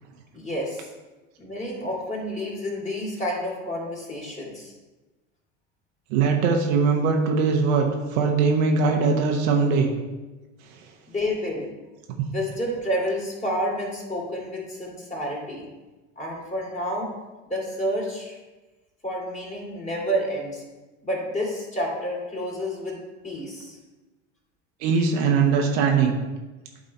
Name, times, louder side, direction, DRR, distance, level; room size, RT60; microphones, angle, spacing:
voice 1, 0.3-0.9 1.4-4.7 11.1-11.7 12.3-15.6 16.2-17.1 17.5-18.4 19.0-20.6 21.0-23.0 23.2-23.8, equal, 20° left, -2 dB, 2.9 m, -29 dB
voice 2, 6.1-7.9 8.1-9.9 12.2-12.3 24.8-26.1, right 5 dB, 60° right, 2 dB, 1.2 m, -21 dB
11.5 x 3.9 x 4.2 m, 1.2 s
figure-of-eight pair, 75°, 37 cm